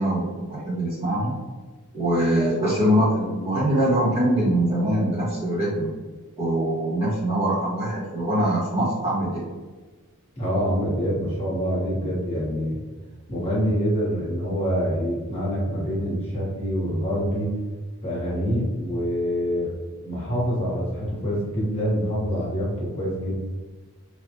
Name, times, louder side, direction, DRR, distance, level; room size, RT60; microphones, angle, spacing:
voice 1, 0.0-1.3 1.9-5.9 6.4-9.4, right 1 dB, 25° right, -8 dB, 1.1 m, -23 dB
voice 2, 10.4-12.8 13.3-17.5 18.0-19.7 20.0-23.3, equal, 25° left, -7 dB, 1.1 m, -26 dB
3.2 x 2.4 x 2.7 m, 1.3 s
head